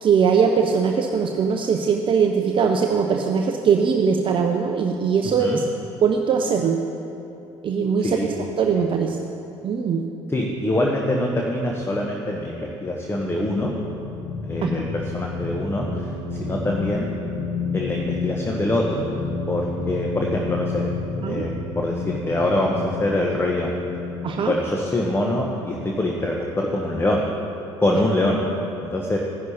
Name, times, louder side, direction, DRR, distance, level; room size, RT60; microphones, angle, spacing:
voice 1, 0.0-5.6 6.0-6.8 7.6-9.2 9.6-10.0 14.6-14.7 21.2-21.5 24.2-24.6, right 6 dB, 35° right, 4 dB, 0.6 m, -21 dB
voice 2, 10.3-13.7 14.5-16.1 16.4-17.1 17.7-19.0 19.5-20.9 21.3-21.5 21.7-23.7 24.5-27.2 27.8-28.4 28.8-29.2, left 1 dB, 15° left, 0 dB, 1.0 m, -24 dB
sound 1, 12.7-26.1, left 3 dB, 60° left, 1.0 m, -31 dB
15.0 x 11.0 x 2.8 m, 2.8 s
figure-of-eight pair, 55°, 15 cm